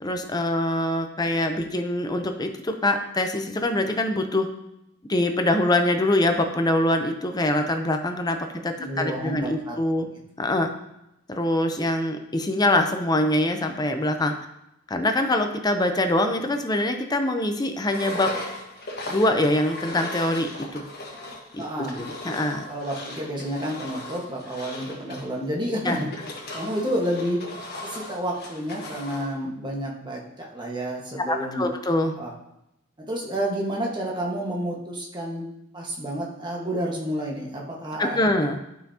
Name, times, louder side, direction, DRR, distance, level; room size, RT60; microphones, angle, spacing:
voice 1, 0.0-4.5 5.1-8.4 8.6-10.1 10.4-10.7 11.3-14.3 14.9-18.3 19.1-20.8 21.5-21.6 22.0-22.6 25.8-26.0 31.3-32.1 38.0-38.6, left 1 dB, 20° left, 5 dB, 0.6 m, -24 dB
voice 2, 8.8-9.8 21.6-22.0 22.7-26.0 26.5-27.4 27.9-31.7 32.2-32.3 33.1-35.4 35.7-38.2, equal, 25° right, -2 dB, 1.4 m, -30 dB
Engine, 17.9-29.3, left 2 dB, 55° left, 1.5 m, -38 dB
11.5 x 5.7 x 2.8 m, 0.85 s
head